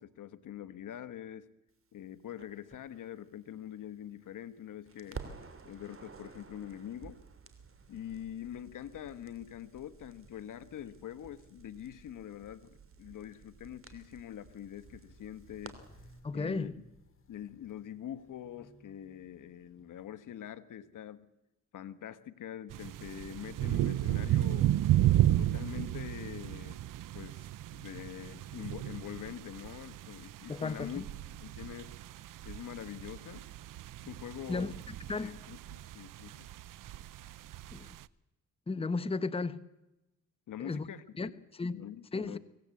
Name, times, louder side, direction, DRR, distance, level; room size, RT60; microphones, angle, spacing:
voice 1, 0.0-1.4 1.9-5.3 5.6-7.2 7.9-15.8 16.3-16.8 17.3-21.3 21.7-24.7 25.4-26.8 27.1-31.1 31.4-31.9 32.4-33.4 34.0-34.7 35.2-36.5 40.5-41.4 41.7-42.4, left 10 dB, 70° left, 13 dB, 1.3 m, -44 dB
Crackle, 2.4-4.5 4.9-16.2, right 5 dB, 40° right, 3.2 m, -52 dB
Walk footsteps, 12.7-20.1, left 2 dB, 40° left, 2.9 m, -62 dB
voice 2, 16.2-16.7 30.5-31.0 34.5-34.7 35.1-35.3 37.7-37.9 38.7-39.6 40.6-40.9 41.2-41.8 42.1-42.4, left 3 dB, 15° left, 13 dB, 1.0 m, -34 dB
sound 1, 22.7-38.0, right 13 dB, 75° right, 0.7 m, -33 dB
24.5 x 17.5 x 8.4 m, 0.93 s
cardioid pair, 85°, 32 cm